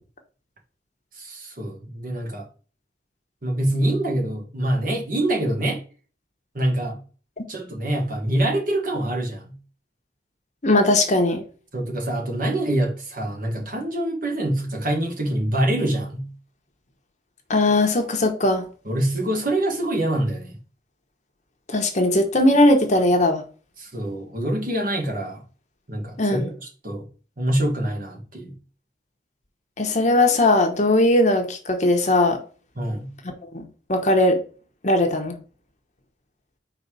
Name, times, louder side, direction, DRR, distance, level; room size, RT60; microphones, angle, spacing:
voice 1, 1.1-2.4 3.4-5.8 6.5-7.0 7.5-9.6 11.7-16.3 18.8-20.6 23.8-25.4 25.9-27.1 27.4-28.5 32.8-33.1, right 1 dB, 45° right, 1.6 m, -25 dB
voice 2, 10.6-11.4 17.5-18.6 21.7-23.4 26.2-26.5 29.8-32.4 33.5-34.4 34.8-35.4, left 1 dB, 40° left, 1.1 m, -19 dB
5.0 x 4.0 x 4.9 m
head